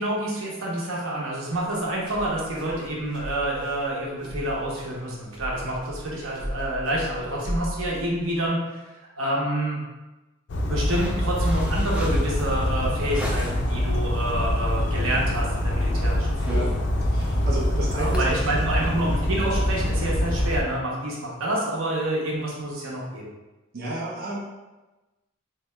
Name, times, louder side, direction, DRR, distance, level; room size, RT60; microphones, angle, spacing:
voice 1, 0.0-8.8 9.2-9.8 10.6-16.7 17.9-23.3, right 1 dB, 80° right, -3 dB, 0.9 m, -28 dB
sound 1, 1.5-8.5, equal, 25° right, 0.9 m, -37 dB
Bird vocalization bird call bird song, 10.5-20.6, left 1 dB, 60° left, 0.5 m, -25 dB
sound 2, 10.8-13.8 14.2-14.6 14.9-15.2 15.5-15.9 16.1-20.1, equal, 5° right, 0.4 m, -41 dB
voice 2, 17.1-18.4 23.7-24.4, right 1 dB, 50° right, -5 dB, 0.7 m, -31 dB
3.3 x 2.8 x 3.3 m, 1.1 s
head